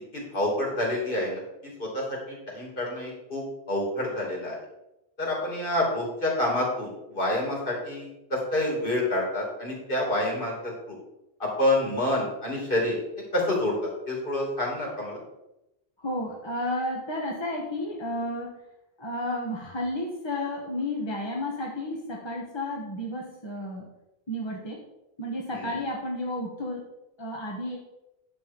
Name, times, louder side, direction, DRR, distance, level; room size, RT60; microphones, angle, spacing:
voice 1, 0.1-1.4 1.8-4.6 5.2-11.0 11.4-13.0 13.3-15.2 25.5-25.8, left 1 dB, 55° left, -2 dB, 3.0 m, -28 dB
voice 2, 16.0-18.5 19.0-23.9 24.3-24.8 25.2-26.8 27.2-27.8, left 1 dB, 25° left, -2 dB, 1.4 m, -32 dB
9.9 x 6.5 x 5.3 m, 0.92 s
omnidirectional pair, 1.1 m